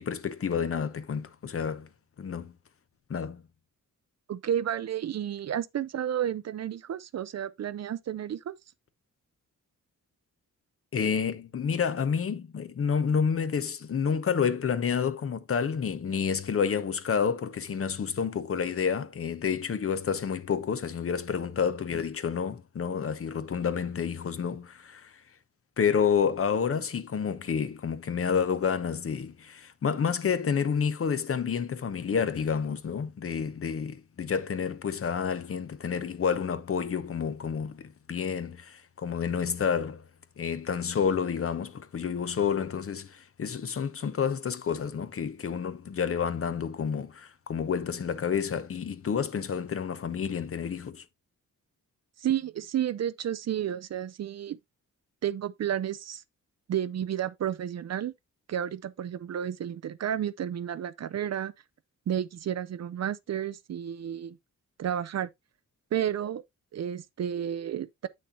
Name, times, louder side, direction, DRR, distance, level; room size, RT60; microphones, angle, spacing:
voice 1, 0.0-1.9 2.2-2.5 3.1-3.4 10.9-25.1 25.8-40.0 40.4-51.0, left 6 dB, 45° left, 0.7 m, -29 dB
voice 2, 4.3-8.5 52.2-54.6 55.2-56.2 56.7-58.1 58.5-61.5 62.1-64.4 64.8-65.3 65.9-66.4 66.7-68.1, right 10 dB, 50° right, 0.5 m, -31 dB
8.3 x 6.3 x 2.7 m
wide cardioid pair, 130°, 33 cm